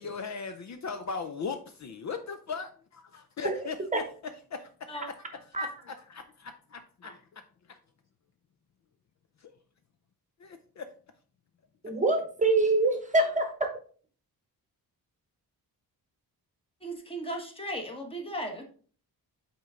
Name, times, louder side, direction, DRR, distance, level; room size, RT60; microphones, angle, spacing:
voice 1, 0.0-4.0 4.5-4.7 5.3-7.4 7.7-7.8 9.4-9.5 10.4-10.8, left 5 dB, 50° left, 8 dB, 0.6 m, -39 dB
voice 2, 11.8-13.7, right 2 dB, 20° right, 5 dB, 1.0 m, -25 dB
voice 3, 16.8-18.6, right 1 dB, 15° left, 2 dB, 1.3 m, -36 dB
8.2 x 4.4 x 3.7 m, 0.42 s
wide cardioid pair, 175°, 37 cm